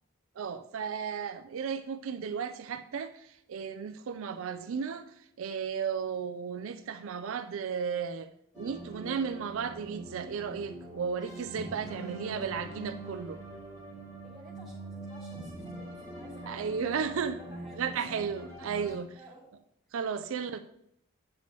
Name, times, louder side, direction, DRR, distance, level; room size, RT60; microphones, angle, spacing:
voice 1, 0.4-8.3 8.6-13.4 16.4-17.4 17.8-19.2 19.9-20.6, right 6 dB, 75° right, 8 dB, 0.4 m, -34 dB
sound 1, 8.5-19.0, right 1 dB, 15° left, 2.8 m, -44 dB
voice 2, 11.8-12.2 14.2-18.5 19.1-19.5, right 1 dB, ahead, -4 dB, 2.5 m, -53 dB
8.2 x 6.7 x 3.1 m, 0.75 s
head